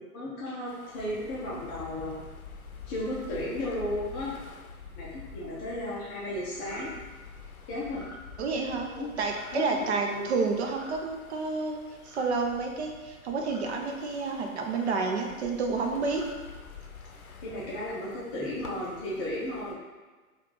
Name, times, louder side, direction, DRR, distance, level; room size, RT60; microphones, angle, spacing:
voice 1, 0.0-2.2 2.9-4.3 5.0-6.9 7.7-8.0 9.0-9.1 9.5-10.3 17.4-19.8, left 1 dB, 15° left, -7 dB, 0.5 m, -34 dB
sound 1, 0.7-19.8, left 5 dB, 80° left, 0.6 m, -48 dB
sound 2, 6.5-6.9 7.8-8.2 9.2-9.5 10.6-10.9 12.0-12.4 13.4-13.7 14.7-15.1 15.9-16.3, equal, 70° right, 1.2 m, -49 dB
voice 2, 8.4-8.9 9.2-16.2, right 4 dB, 50° right, 2 dB, 0.7 m, -30 dB
4.5 x 2.4 x 3.7 m, 1.3 s
figure-of-eight pair, 105°, 42 cm